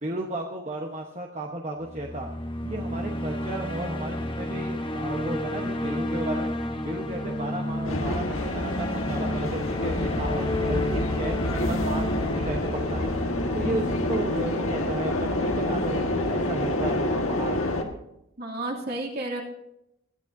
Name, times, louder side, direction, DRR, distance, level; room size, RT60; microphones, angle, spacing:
voice 1, 0.0-2.3 2.6-6.5 6.8-13.1 13.5-17.7, right 1 dB, 30° right, 1 dB, 1.1 m, -34 dB
sound 1, 1.8-16.0, left 1 dB, 25° left, 1.1 m, -31 dB
voice 2, 2.6-3.1 18.4-19.4, right 2 dB, 50° right, -1 dB, 2.8 m, -33 dB
sound 2, 7.8-17.8, left 1 dB, 75° left, 1.7 m, -28 dB
21.5 x 13.0 x 2.7 m, 0.82 s
head